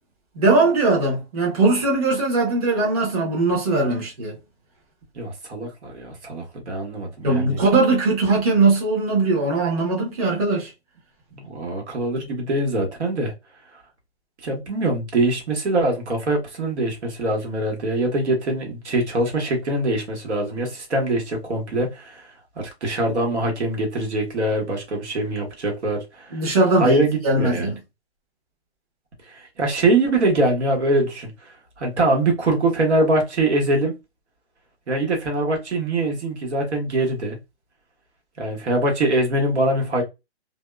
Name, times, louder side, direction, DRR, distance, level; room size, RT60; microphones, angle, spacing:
voice 1, 0.4-4.4 7.2-10.7 26.3-27.8, right 3 dB, 35° right, 1.0 m, -20 dB
voice 2, 5.1-7.6 11.4-13.3 14.4-22.3 22.6-26.5 26.8-27.7 29.3-31.3 31.8-34.0 34.9-37.4 38.4-40.0, right 2 dB, 80° right, 1.4 m, -23 dB
2.7 x 2.2 x 2.2 m
hypercardioid pair, 170°, 34 cm